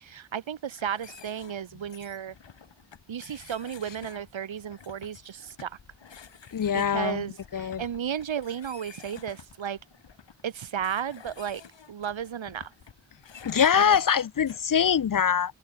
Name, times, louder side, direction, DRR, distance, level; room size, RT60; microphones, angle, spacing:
voice 1, 0.0-2.3 3.1-5.8 6.7-9.8 10.4-11.6 11.9-12.7 13.7-14.0, right 8 dB, 75° right, 1.4 m, -34 dB
sound 1, 0.7-14.6, left 7 dB, 65° left, 2.4 m, -51 dB
voice 2, 6.5-7.3 7.5-7.8 13.4-15.5, left 8 dB, 45° left, 0.6 m, -23 dB
wide cardioid pair, 115°, 46 cm